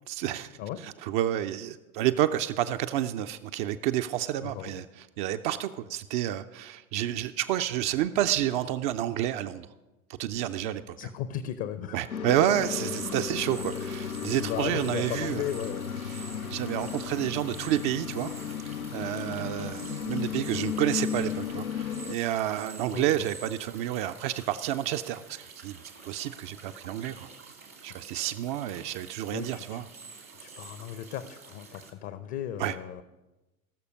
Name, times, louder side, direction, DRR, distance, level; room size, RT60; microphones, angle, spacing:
voice 1, 0.1-0.5 0.8-9.7 10.2-11.1 11.9-15.4 16.1-18.3 18.6-25.8 26.0-27.3 27.8-29.9 32.6-33.0, right 12 dB, 35° right, 8 dB, 0.5 m, -30 dB
voice 2, 4.4-4.7 11.0-12.0 14.3-15.9 22.9-23.1 29.3-29.8 30.4-33.0, left 10 dB, 40° left, 12 dB, 0.7 m, -36 dB
sound 1, 12.1-22.2, left 7 dB, 85° left, 0.6 m, -35 dB
sound 2, 12.4-31.9, right 4 dB, 85° right, 2.3 m, -48 dB
18.0 x 6.8 x 5.3 m, 1.1 s
figure-of-eight pair, 80°, 42 cm